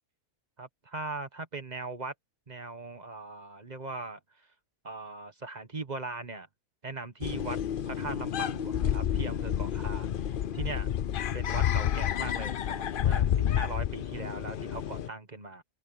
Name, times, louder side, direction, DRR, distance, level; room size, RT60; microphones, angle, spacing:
voice 1, 0.6-2.1 2.5-4.2 4.8-6.5 6.8-7.6 7.8-10.1 10.5-10.9 11.3-15.6, right 3 dB, 30° right, 1.4 m, -39 dB
sound 1, 7.2-15.1, left 10 dB, 70° left, 0.5 m, -30 dB
open air
omnidirectional pair, 1.6 m